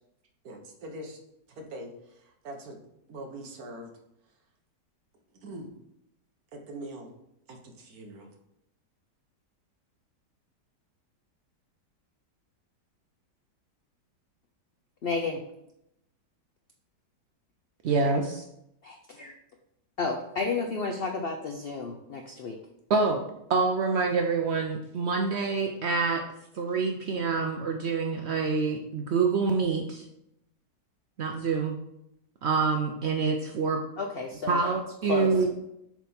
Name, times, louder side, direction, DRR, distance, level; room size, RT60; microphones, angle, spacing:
voice 1, 0.4-1.2 1.5-2.8 3.1-3.9 4.3-4.4 5.3-5.7 6.5-7.1 7.5-8.3, right 1 dB, 60° right, 3 dB, 1.4 m, -42 dB
voice 2, 15.0-15.4 18.8-19.3 20.0-22.6 34.0-34.6 35.1-35.3, left 4 dB, 85° left, 3 dB, 0.5 m, -31 dB
voice 3, 17.8-18.4 22.9-23.2 23.5-26.2 26.5-30.0 31.2-31.8 32.4-33.8 34.5-35.5, right 4 dB, 85° right, 3 dB, 0.5 m, -26 dB
7.3 x 3.6 x 4.2 m, 0.81 s
omnidirectional pair, 1.8 m